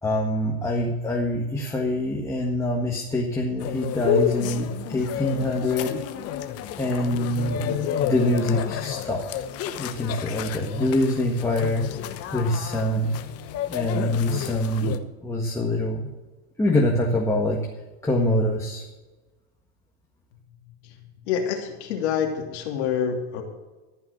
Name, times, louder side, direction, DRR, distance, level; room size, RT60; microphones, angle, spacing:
voice 1, 0.0-6.0 6.8-7.6 8.0-9.2 9.8-11.9 12.3-13.2 13.7-14.9 15.2-16.1 16.6-17.6 18.0-18.8, left 1 dB, 10° left, -1 dB, 1.6 m, -25 dB
sound 1, 3.6-15.0, left 10 dB, 45° left, 1.0 m, -30 dB
voice 2, 21.3-23.4, left 7 dB, 85° left, 2 dB, 2.9 m, -26 dB
14.5 x 5.9 x 8.5 m, 1.2 s
supercardioid pair, 130°, 33 cm